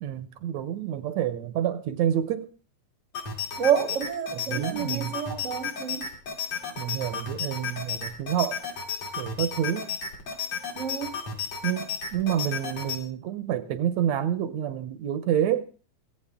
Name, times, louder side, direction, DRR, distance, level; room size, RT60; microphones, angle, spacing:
voice 1, 0.0-2.5 4.3-5.2 6.8-8.6 9.2-9.9 11.6-15.6, right 10 dB, 75° right, 1.9 m, -28 dB
sound 1, 3.1-13.0, left 5 dB, 60° left, 3.6 m, -34 dB
voice 2, 3.6-6.0 10.7-11.1, right 8 dB, 40° right, 1.0 m, -28 dB
16.0 x 15.5 x 3.5 m
omnidirectional pair, 3.4 m